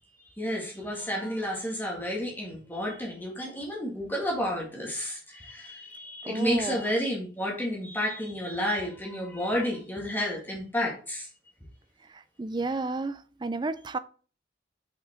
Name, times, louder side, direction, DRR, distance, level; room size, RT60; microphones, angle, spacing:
voice 1, 0.4-11.3, equal, 10° left, 2.0 m, -31 dB
voice 2, 6.2-6.8 12.1-14.0, right 3 dB, 25° right, 0.4 m, -32 dB
5.9 x 5.7 x 3.7 m
head